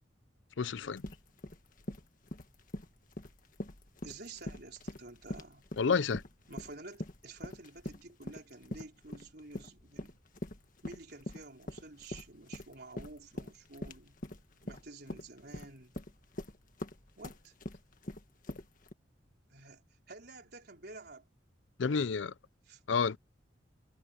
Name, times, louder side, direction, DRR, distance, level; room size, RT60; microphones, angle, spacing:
voice 1, 0.6-1.0 5.8-6.2 21.8-22.3 22.9-23.2, left 5 dB, 75° left, 0.5 m, -29 dB
sound 1, 0.8-18.9, left 1 dB, 45° left, 1.7 m, -43 dB
voice 2, 4.0-5.6 6.5-10.2 10.8-14.2 14.6-16.0 17.2-17.5 19.5-19.8 20.1-21.2 22.7-22.8, right 3 dB, 55° right, 4.5 m, -50 dB
head